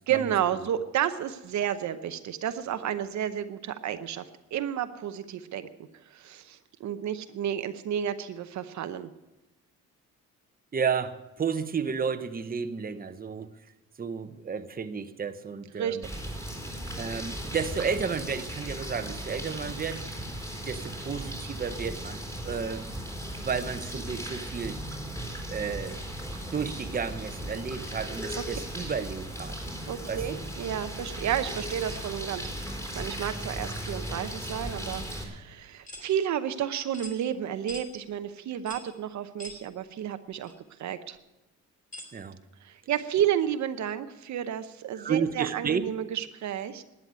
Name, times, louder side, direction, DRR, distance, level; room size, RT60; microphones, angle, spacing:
voice 1, 0.1-5.7 6.1-9.1 15.8-16.0 28.4-28.5 29.9-40.5 40.8-41.2 42.6-46.8, right 10 dB, 70° right, 10 dB, 0.8 m, -31 dB
voice 2, 10.7-13.5 14.0-16.1 17.0-20.1 20.6-22.8 23.4-24.8 25.5-26.0 26.5-29.6 30.1-30.4 42.1-42.4 44.9-45.9, right 6 dB, 30° right, 9 dB, 1.0 m, -32 dB
sound 1, 16.0-35.2, equal, 10° left, 3.8 m, -37 dB
sound 2, 35.9-36.1 36.9-37.2 37.7-37.9 38.7-38.9 39.4-39.6 40.4-40.5 41.9-42.1, left 1 dB, 25° left, 2.9 m, -42 dB
11.5 x 9.2 x 9.4 m, 1.0 s
cardioid pair, 90°, 30 cm